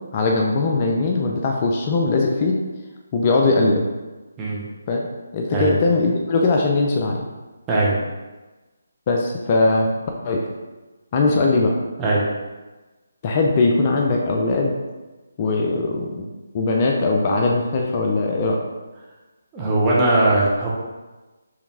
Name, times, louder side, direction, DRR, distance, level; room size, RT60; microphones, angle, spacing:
voice 1, 0.1-2.6 3.1-3.8 4.9-5.0 5.3-7.2 9.1-9.9 10.2-10.5 11.1-11.8 13.2-14.7 15.4-16.3 16.5-18.6, left 3 dB, 30° left, 0 dB, 0.5 m, -20 dB
voice 2, 19.5-20.7, right 2 dB, 15° right, -6 dB, 1.0 m, -19 dB
4.7 x 3.3 x 3.3 m, 1.2 s
figure-of-eight pair, 150°, 0 cm